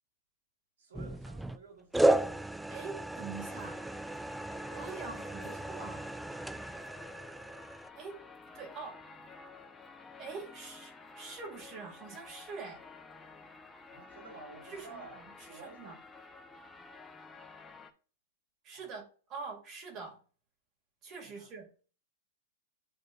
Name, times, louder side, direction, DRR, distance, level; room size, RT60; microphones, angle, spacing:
voice 1, 0.8-2.5 13.9-16.0 18.7-18.9 21.2-21.5, right 3 dB, 80° right, 3.4 m, -52 dB
sound 1, 0.9-1.6 1.9-7.9, right 1 dB, 5° right, 0.3 m, -33 dB
voice 2, 2.7-3.8 4.7-6.0 7.9-8.2 8.5-9.0 10.2-12.8 14.6-16.0 18.6-19.0 19.3-20.2 21.0-21.7, right 4 dB, 40° right, 2.7 m, -44 dB
sound 2, 3.3-17.9, left 4 dB, 15° left, 1.1 m, -52 dB
11.5 x 4.4 x 2.7 m
hypercardioid pair, 120°, 0 cm